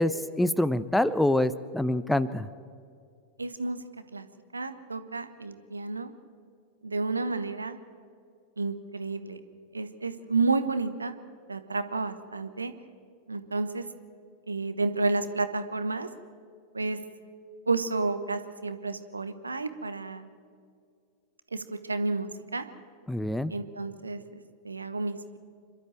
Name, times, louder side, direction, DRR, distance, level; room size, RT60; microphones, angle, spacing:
voice 1, 0.0-2.5 23.1-23.5, left 1 dB, 5° left, 16 dB, 0.6 m, -25 dB
voice 2, 3.4-3.8 4.1-4.3 4.5-6.1 6.8-7.8 8.6-9.4 9.7-11.1 11.5-12.7 13.3-13.8 14.5-16.1 16.7-17.0 17.7-20.3 21.5-22.6 23.5-25.4, right 3 dB, 80° right, 11 dB, 1.1 m, -31 dB
27.0 x 12.5 x 7.6 m, 2.3 s
figure-of-eight pair, 90°, 0 cm